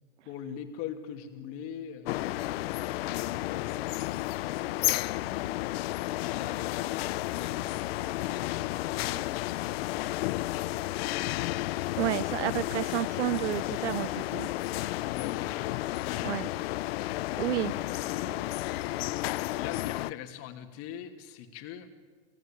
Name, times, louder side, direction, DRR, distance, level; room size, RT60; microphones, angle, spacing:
voice 1, 0.2-2.7 3.0-5.8 6.2-10.7 12.4-12.7 15.0-16.6 17.0-18.9 19.6-21.9, left 9 dB, 40° left, 5 dB, 2.8 m, -44 dB
sound 1, 2.0-20.1, left 17 dB, 60° left, 0.7 m, -32 dB
voice 2, 12.0-14.5 16.2-16.5 17.4-17.7, right 13 dB, 85° right, 19 dB, 0.7 m, -30 dB
29.5 x 19.0 x 9.0 m, 1.5 s
supercardioid pair, 140°, 34 cm